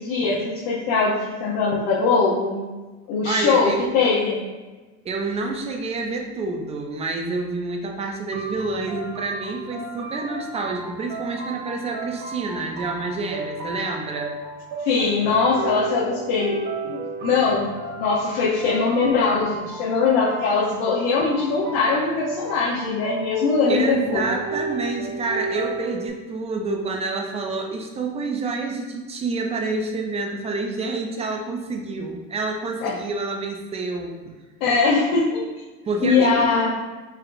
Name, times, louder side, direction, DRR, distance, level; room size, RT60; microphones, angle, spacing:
voice 1, 0.0-2.7 3.1-4.4 14.8-24.3 32.8-33.0 34.6-35.5 36.0-36.7, left 4 dB, 65° left, -7 dB, 0.9 m, -21 dB
voice 2, 3.2-3.8 5.0-14.4 23.7-34.3 35.1-35.2 35.8-36.7, right 3 dB, 15° right, 2 dB, 0.3 m, -28 dB
sound 1, 8.3-26.1, right 3 dB, 65° right, 1.3 m, -34 dB
4.5 x 3.6 x 2.6 m, 1.3 s
supercardioid pair, 135°, 39 cm